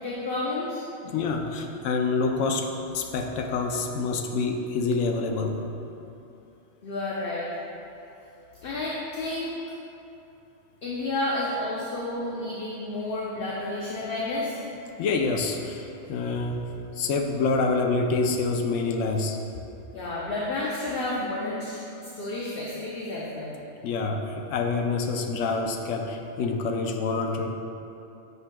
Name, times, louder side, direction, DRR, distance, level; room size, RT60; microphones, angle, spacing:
voice 1, 0.0-0.9 6.8-7.5 8.6-9.6 10.8-14.6 19.9-23.6, left 2 dB, 55° left, -5 dB, 0.8 m, -31 dB
voice 2, 1.0-5.6 14.8-19.4 23.8-27.5, left 4 dB, 85° left, 3 dB, 0.9 m, -27 dB
8.1 x 5.9 x 2.2 m, 2.8 s
omnidirectional pair, 1.3 m